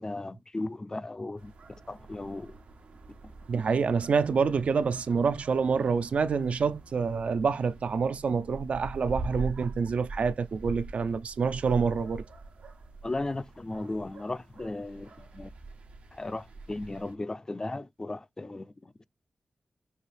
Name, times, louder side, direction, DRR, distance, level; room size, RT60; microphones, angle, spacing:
voice 1, 0.0-1.5 1.9-2.5 13.0-15.5 16.1-19.1, left 2 dB, 30° left, 0.4 m, -36 dB
sound 1, 1.4-17.1, right 3 dB, 90° right, 1.1 m, -44 dB
voice 2, 3.5-12.2, right 5 dB, 70° right, 0.5 m, -27 dB
5.6 x 2.7 x 3.3 m
cardioid pair, 65°, 2 cm